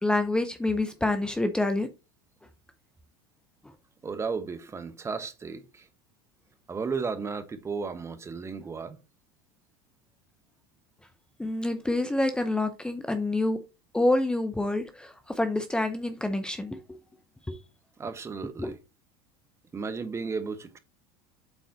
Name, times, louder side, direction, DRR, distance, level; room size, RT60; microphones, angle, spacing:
voice 1, 0.0-1.9 11.4-13.6 13.9-16.8 17.5-17.6 18.6-18.7, left 2 dB, 5° left, 0.7 m, -27 dB
voice 2, 4.0-5.9 6.7-9.0 18.0-18.8 19.7-20.8, right 5 dB, 25° right, 1.2 m, -34 dB
8.1 x 4.1 x 4.0 m
hypercardioid pair, 90°, 12 cm